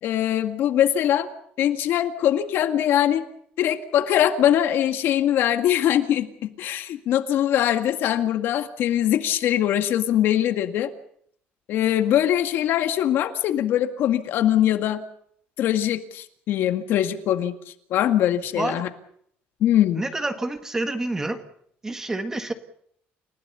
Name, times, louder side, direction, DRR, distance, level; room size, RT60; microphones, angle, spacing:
voice 1, 0.0-1.3 1.6-3.2 3.6-10.9 11.7-15.0 15.6-17.5 17.9-18.9 19.6-20.0, left 11 dB, 60° left, 8 dB, 2.0 m, -22 dB
voice 2, 19.9-21.4 21.8-22.5, right 2 dB, 10° right, 9 dB, 1.6 m, -28 dB
29.5 x 16.5 x 7.0 m, 0.66 s
cardioid pair, 165°, 4 cm